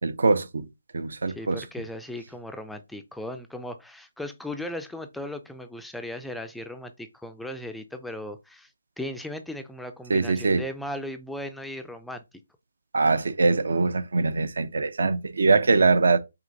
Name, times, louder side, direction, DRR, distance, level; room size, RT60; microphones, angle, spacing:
voice 1, 0.0-0.7 0.9-1.6 10.1-10.6 12.9-16.2, right 3 dB, 70° right, 0.5 m, -22 dB
voice 2, 1.3-8.7 9.0-12.2, left 1 dB, ahead, 0.3 m, -37 dB
4.9 x 2.9 x 2.6 m
figure-of-eight pair, 150°, 0 cm